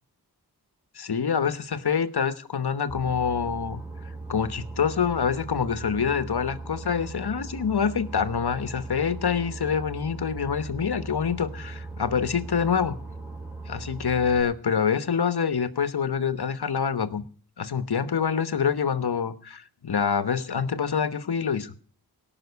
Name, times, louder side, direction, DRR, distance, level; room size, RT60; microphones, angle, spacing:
voice 1, 0.9-3.8 4.3-13.0 13.7-17.2 17.6-21.7, left 6 dB, 70° left, 13 dB, 1.2 m, -26 dB
Boat Water vehicle, 2.9-14.4, right 3 dB, 5° right, 3.9 m, -38 dB
17.5 x 6.0 x 8.2 m, 0.44 s
cardioid pair, 40°, 40 cm